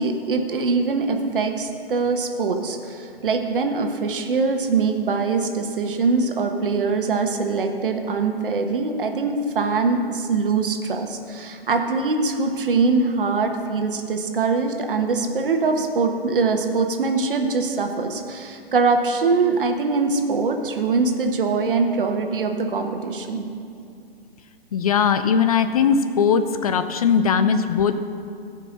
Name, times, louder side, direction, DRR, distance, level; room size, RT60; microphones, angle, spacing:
voice 1, 0.0-23.5, right 4 dB, 60° right, 4 dB, 1.3 m, -23 dB
voice 2, 24.7-28.0, left 6 dB, 40° left, 10 dB, 0.5 m, -19 dB
16.0 x 5.5 x 6.5 m, 2.4 s
figure-of-eight pair, 125°, 30 cm